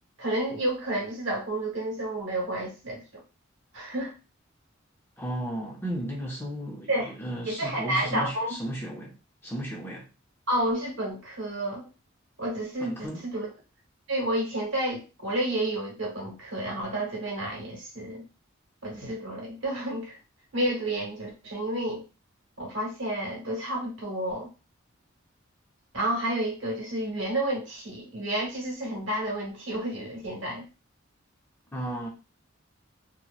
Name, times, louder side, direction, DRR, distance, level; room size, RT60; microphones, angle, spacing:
voice 1, 0.2-3.0 3.7-4.1 6.9-7.1 7.5-8.5 10.5-11.9 12.4-13.5 14.1-18.2 18.8-20.2 20.5-22.0 22.6-24.5 25.9-30.7, right 1 dB, 65° right, 1.1 m, -30 dB
voice 2, 5.2-9.2 9.4-10.1 12.8-13.2 31.7-32.1, right 1 dB, 10° left, 0.5 m, -34 dB
2.8 x 2.0 x 2.3 m
head